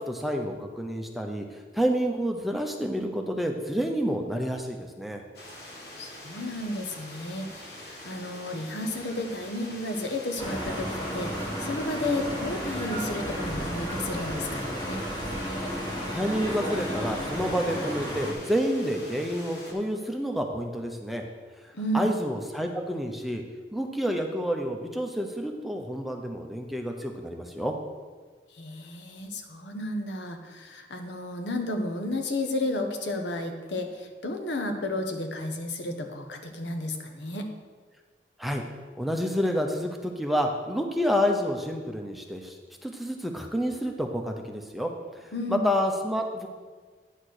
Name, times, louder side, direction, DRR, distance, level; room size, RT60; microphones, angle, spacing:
voice 1, 0.0-5.2 16.1-21.2 21.9-23.4 23.7-27.7 38.4-38.6 38.9-42.6 42.8-46.5, equal, ahead, 2 dB, 0.6 m, -29 dB
sound 1, 5.3-19.7, left 1 dB, 70° left, 1.8 m, -44 dB
voice 2, 6.0-15.0 21.7-22.1 28.5-37.5 45.3-45.6, left 1 dB, 90° left, 5 dB, 1.0 m, -32 dB
sound 2, 10.4-18.3, equal, 25° left, 1.4 m, -33 dB
9.9 x 4.4 x 6.4 m, 1.5 s
head